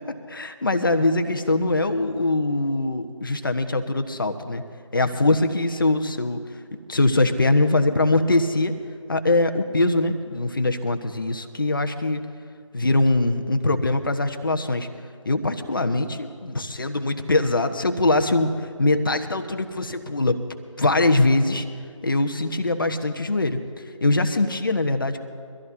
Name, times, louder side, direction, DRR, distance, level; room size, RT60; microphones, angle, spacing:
voice 1, 0.1-4.6 4.9-6.4 6.9-8.7 9.1-12.2 12.7-14.9 15.2-20.4 20.8-21.7 22.0-23.6 24.0-25.2, left 2 dB, 40° left, 6 dB, 1.2 m, -22 dB
24.5 x 14.0 x 2.7 m, 2.2 s
figure-of-eight pair, 160°, 17 cm